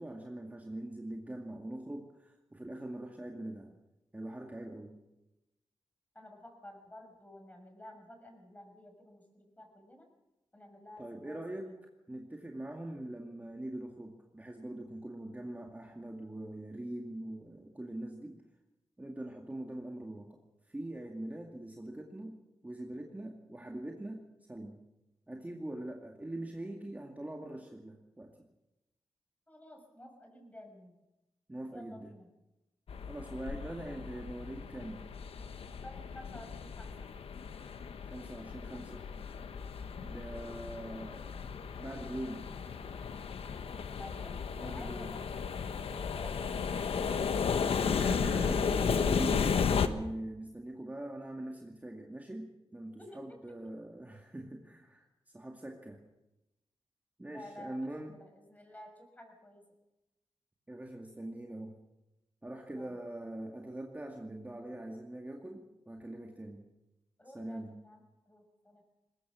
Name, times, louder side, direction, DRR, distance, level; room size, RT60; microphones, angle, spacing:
voice 1, 0.0-3.7 4.1-5.0 11.0-11.7 12.1-18.4 19.0-20.4 20.7-22.4 22.6-24.2 24.5-24.8 25.3-28.3 31.5-32.1 33.1-35.0 38.1-39.1 40.0-41.5 41.8-42.4 44.6-45.1 48.0-56.0 57.2-58.1 60.7-61.8 62.4-66.7 67.3-67.8, right 1 dB, 15° right, 1 dB, 2.2 m, -42 dB
voice 2, 6.1-10.1 10.5-11.8 29.5-30.9 31.7-32.3 33.8-34.1 35.8-37.1 43.9-45.4 53.0-53.2 57.3-59.6 62.7-63.0 67.2-68.8, left 1 dB, 15° left, 3 dB, 6.4 m, -52 dB
sound 1, 32.9-49.9, left 6 dB, 85° left, 1.2 m, -34 dB
21.0 x 20.0 x 6.3 m, 0.98 s
cardioid pair, 80°, 10 cm